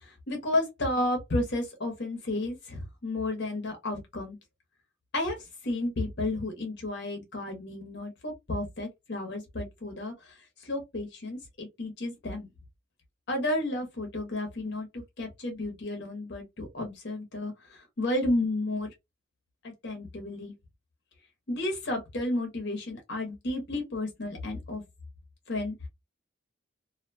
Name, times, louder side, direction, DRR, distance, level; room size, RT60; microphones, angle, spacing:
voice 1, 0.0-4.4 5.1-5.4 5.6-10.3 10.6-12.5 13.3-14.9 15.2-18.9 19.6-20.5 21.5-24.8 25.5-25.7, left 1 dB, 55° left, 0.9 m, -32 dB
2.7 x 2.1 x 2.6 m
head